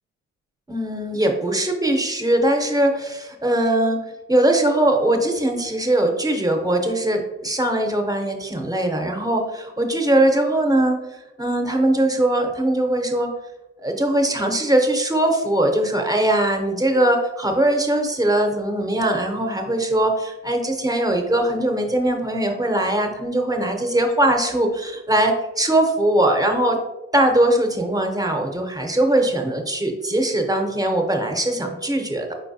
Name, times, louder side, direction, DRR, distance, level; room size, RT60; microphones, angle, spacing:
voice 1, 0.7-4.0 4.3-13.3 13.8-26.8 27.1-32.3, right 1 dB, 10° right, 3 dB, 0.7 m, -21 dB
4.4 x 4.4 x 2.7 m, 1.0 s
cardioid pair, 90°, 30 cm